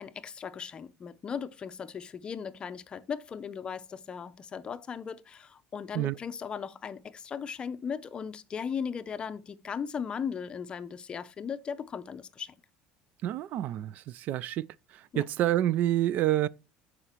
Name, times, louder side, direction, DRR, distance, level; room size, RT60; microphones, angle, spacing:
voice 1, 0.0-12.5 15.1-15.2, left 7 dB, 30° left, 0.6 m, -37 dB
voice 2, 13.2-14.6 14.9-16.5, right 13 dB, 50° right, 0.3 m, -28 dB
14.0 x 5.0 x 3.0 m
cardioid pair, 135°, 3 cm